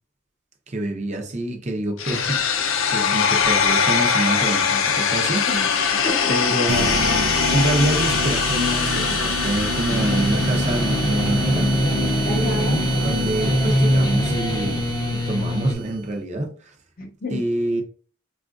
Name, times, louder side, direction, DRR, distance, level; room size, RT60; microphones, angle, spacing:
voice 1, 0.7-5.4 6.3-11.7 12.3-12.7 13.0-16.7 17.3-17.8, right 1 dB, 35° right, 0.7 m, -26 dB
sound 1, 2.0-12.0, left 6 dB, 90° left, 0.5 m, -22 dB
voice 2, 5.5-6.3 12.2-12.8 17.0-17.4, left 1 dB, 45° left, 0.9 m, -30 dB
sound 2, 6.7-16.0, right 1 dB, 80° right, 0.5 m, -27 dB
sound 3, 9.9-15.7, equal, 20° left, 0.5 m, -23 dB
4.8 x 2.4 x 2.4 m
head